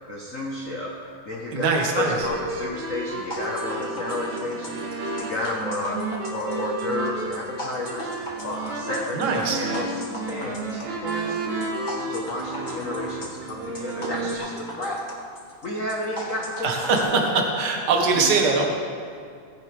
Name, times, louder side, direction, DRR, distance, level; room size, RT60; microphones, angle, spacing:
voice 1, 0.1-9.9 10.3-11.6 12.1-15.0 15.6-17.1 18.1-18.3, left 1 dB, 70° left, -2 dB, 0.7 m, -31 dB
voice 2, 1.5-2.3 9.1-9.6 16.6-18.7, right 4 dB, 45° right, 1 dB, 1.6 m, -22 dB
sound 1, 2.0-14.4, right 3 dB, 80° right, 2.9 m, -32 dB
sound 2, 3.3-17.0, left 1 dB, 20° left, 1.4 m, -38 dB
17.5 x 10.5 x 3.4 m, 2.3 s
omnidirectional pair, 3.3 m